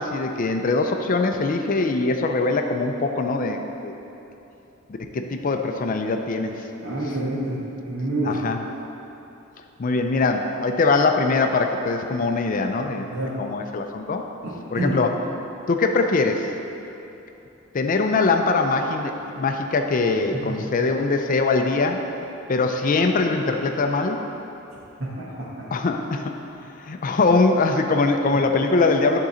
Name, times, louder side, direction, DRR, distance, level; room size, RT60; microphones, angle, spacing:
voice 1, 0.0-3.9 4.9-6.7 8.2-8.7 9.8-13.1 13.4-14.2 14.7-15.2 15.7-16.5 17.7-22.0 22.5-24.2 25.7-26.4 26.8-29.3, left 3 dB, 40° left, 5 dB, 0.4 m, -22 dB
voice 2, 6.8-7.6 7.9-8.4 13.0-13.3 14.4-15.0 25.0-25.2, right 1 dB, 75° right, -10 dB, 1.4 m, -27 dB
11.0 x 3.8 x 4.3 m, 2.9 s
head